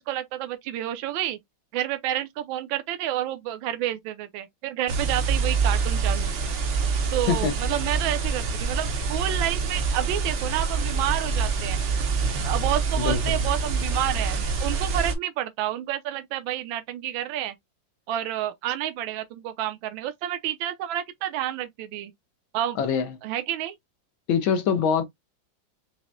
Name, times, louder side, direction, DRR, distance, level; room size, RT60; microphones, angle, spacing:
voice 1, 0.1-1.4 1.7-6.3 7.1-11.8 12.4-17.6 18.1-22.1 22.5-22.8 23.2-23.8, right 12 dB, 80° right, 1.4 m, -29 dB
sound 1, 4.9-15.1, right 4 dB, 60° right, 0.8 m, -26 dB
voice 2, 13.0-13.4 22.8-23.1 24.3-25.0, left 6 dB, 80° left, 1.6 m, -24 dB
5.9 x 2.1 x 2.5 m
omnidirectional pair, 2.1 m